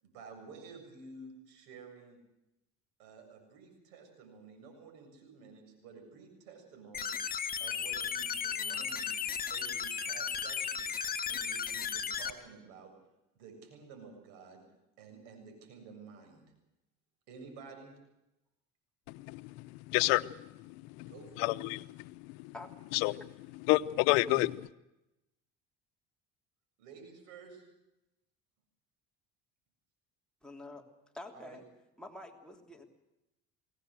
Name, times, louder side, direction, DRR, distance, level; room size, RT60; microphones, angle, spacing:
voice 1, 0.0-2.2 3.0-7.2 7.6-9.2 9.5-11.0 11.3-12.9 13.3-14.6 15.0-16.5 17.3-18.0 21.1-21.6 26.8-27.6 31.3-31.6, right 4 dB, 85° right, 4 dB, 7.6 m, -52 dB
sound 1, 6.9-12.3, left 7 dB, 30° left, 1.6 m, -35 dB
voice 2, 19.1-21.1 21.4-22.5 22.9-23.3 23.7-24.5, left 20 dB, 85° left, 14 dB, 0.8 m, -30 dB
voice 3, 30.4-30.8 31.1-31.6 32.0-32.8, left 2 dB, 5° left, 1 dB, 3.3 m, -47 dB
22.0 x 18.5 x 8.1 m, 0.92 s
cardioid pair, 110°, 31 cm